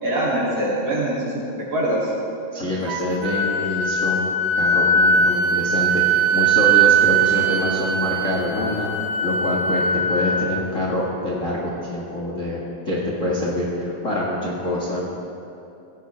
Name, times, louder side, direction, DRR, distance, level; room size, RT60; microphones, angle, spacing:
voice 1, 0.0-2.1, right 1 dB, 40° right, -8 dB, 3.8 m, -23 dB
voice 2, 2.5-4.3 4.5-8.9 9.2-9.8 10.1-12.6 12.8-15.0, left 1 dB, 45° left, -4 dB, 0.9 m, -25 dB
Wind instrument woodwind instrument, 2.9-10.6, right 4 dB, 70° right, 1.3 m, -20 dB
18.0 x 16.0 x 3.5 m, 2.9 s
omnidirectional pair, 4.5 m